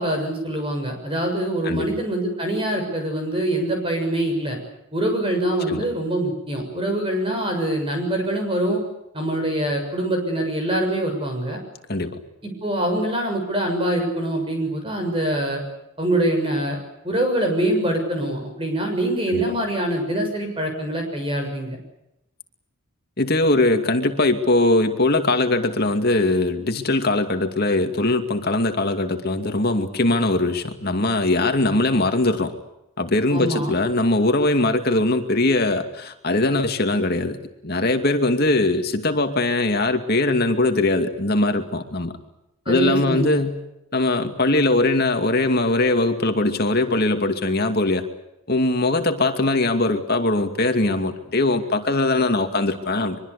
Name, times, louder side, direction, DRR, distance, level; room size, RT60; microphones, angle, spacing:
voice 1, 0.0-4.6 4.9-8.8 9.1-11.6 12.4-15.6 16.0-16.8 17.0-21.8 33.3-33.7 42.7-43.4, right 1 dB, 25° right, 4 dB, 6.9 m, -24 dB
voice 2, 23.2-32.5 33.0-37.4 37.6-42.1 42.7-43.6 43.9-48.0 48.5-53.2, left 2 dB, 45° left, 6 dB, 2.5 m, -21 dB
24.0 x 23.0 x 8.4 m, 0.86 s
head